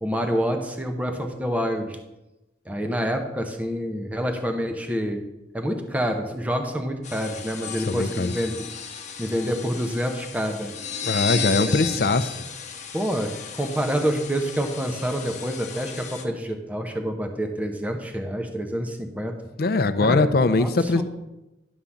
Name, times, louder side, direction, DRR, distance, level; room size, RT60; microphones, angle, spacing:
voice 1, 0.0-2.0 2.7-5.2 5.5-8.6 9.2-10.7 11.6-11.7 12.9-19.4 20.0-21.0, equal, 10° right, 4 dB, 0.7 m, -27 dB
sound 1, 7.0-16.2, left 7 dB, 40° left, 0.9 m, -34 dB
voice 2, 7.8-8.3 11.0-12.4 19.6-21.0, left 3 dB, 55° left, 12 dB, 0.5 m, -21 dB
11.0 x 3.8 x 7.0 m, 0.97 s
head